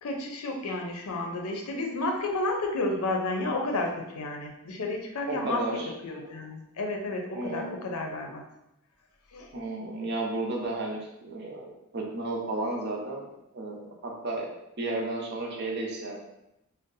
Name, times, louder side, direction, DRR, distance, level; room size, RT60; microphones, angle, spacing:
voice 1, 0.0-8.4 9.3-9.5, left 2 dB, 80° left, 2 dB, 0.5 m, -31 dB
voice 2, 5.3-5.9 7.3-7.7 9.5-13.2 13.5-14.5 14.8-16.2, right 2 dB, 50° right, -1 dB, 0.6 m, -33 dB
2.6 x 2.0 x 3.9 m, 0.87 s
head